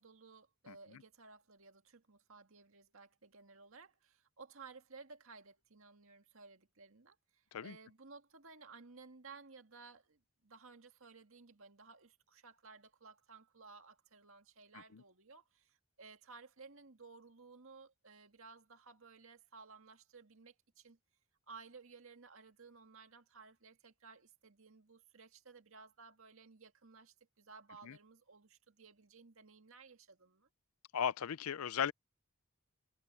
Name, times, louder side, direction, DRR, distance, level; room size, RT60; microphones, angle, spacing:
voice 1, 0.0-21.0 21.5-30.5, right 4 dB, 65° right, 2.0 m, -57 dB
voice 2, 30.9-31.9, left 8 dB, 80° left, 0.5 m, -37 dB
head